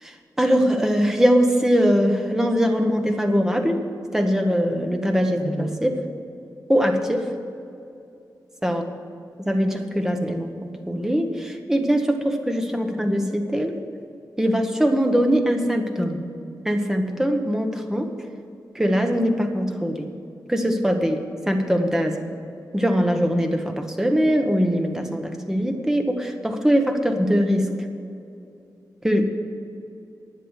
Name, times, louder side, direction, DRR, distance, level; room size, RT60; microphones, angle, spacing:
voice 1, 0.0-3.8 4.1-6.0 6.7-7.3 8.6-8.8 9.5-13.7 14.4-16.2 16.6-18.1 18.7-20.1 20.5-22.3 22.7-27.7 29.0-29.3, equal, 5° right, 4 dB, 1.0 m, -22 dB
11.5 x 9.2 x 8.1 m, 2.6 s
wide cardioid pair, 170°, 7 cm